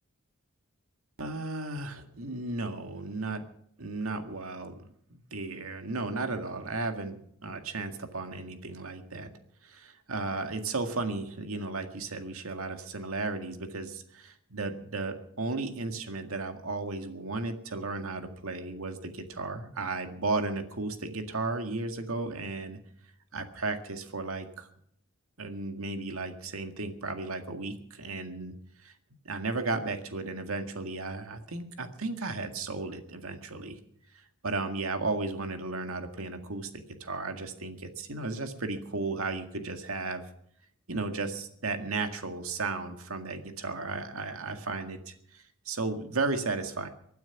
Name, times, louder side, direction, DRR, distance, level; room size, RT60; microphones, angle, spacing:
voice 1, 1.2-3.4 3.8-9.3 9.6-22.8 23.3-24.7 25.4-28.5 28.8-28.9 29.3-33.8 34.4-40.2 40.9-46.9, right 3 dB, 80° right, 6 dB, 1.9 m, -34 dB
24.0 x 9.3 x 5.9 m, 0.72 s
head